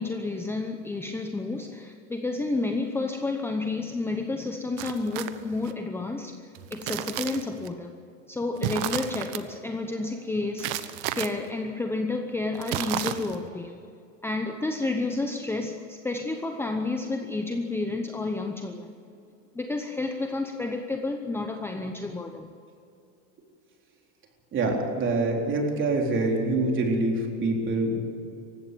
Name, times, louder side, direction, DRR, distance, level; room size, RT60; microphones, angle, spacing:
voice 1, 0.0-8.0 8.3-10.9 11.1-13.8 14.2-18.9 19.5-22.5, left 3 dB, 5° left, 5 dB, 0.9 m, -30 dB
sound 1, 4.8-5.7 6.6-7.7 8.6-9.4 10.6-11.3 12.6-13.5, right 12 dB, 50° right, 1.2 m, -32 dB
voice 2, 24.5-28.0, right 2 dB, 30° right, 1 dB, 4.0 m, -25 dB
19.0 x 16.0 x 9.2 m, 2.6 s
supercardioid pair, 135°, 37 cm